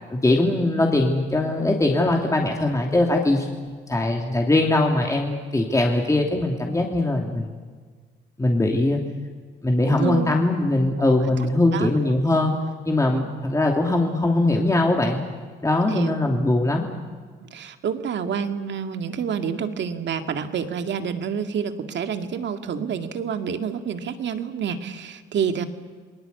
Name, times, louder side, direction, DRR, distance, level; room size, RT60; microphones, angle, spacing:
voice 1, 0.1-7.5 8.4-9.0 9.6-12.5 12.8-15.2 15.6-16.9, left 2 dB, 15° left, 1 dB, 3.0 m, -21 dB
voice 2, 9.9-10.3 11.0-11.1 11.7-11.9 13.1-13.3 15.8-16.2 17.5-25.6, right 7 dB, 65° right, 6 dB, 2.1 m, -28 dB
29.0 x 20.5 x 8.4 m, 1.5 s
cardioid pair, 90°, 20 cm